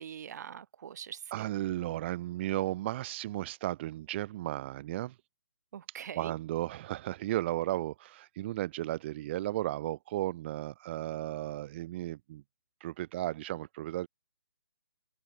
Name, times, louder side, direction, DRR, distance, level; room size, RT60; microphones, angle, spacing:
voice 1, 0.0-1.4 5.7-6.3, right 9 dB, 50° right, 1.6 m, -43 dB
voice 2, 1.3-5.2 6.2-12.4 12.8-14.1, right 15 dB, 30° right, 0.9 m, -34 dB
open air
hypercardioid pair, 150°, 12 cm